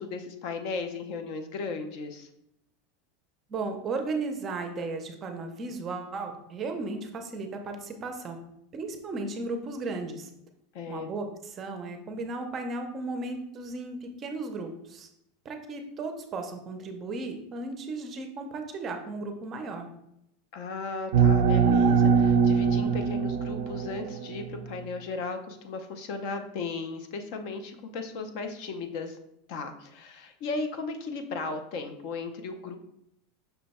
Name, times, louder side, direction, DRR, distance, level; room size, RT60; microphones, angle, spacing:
voice 1, 0.0-2.3 10.7-11.1 20.5-29.2 29.5-32.8, left 4 dB, 50° left, 7 dB, 0.5 m, -36 dB
voice 2, 3.5-8.4 8.7-10.3 10.9-15.1 15.4-19.9, right 3 dB, 25° right, 5 dB, 0.5 m, -35 dB
Alien Abduction Atmosphere, 21.1-24.6, right 6 dB, 85° right, 0.4 m, -22 dB
5.5 x 2.2 x 4.1 m, 0.77 s
supercardioid pair, 155°, 0 cm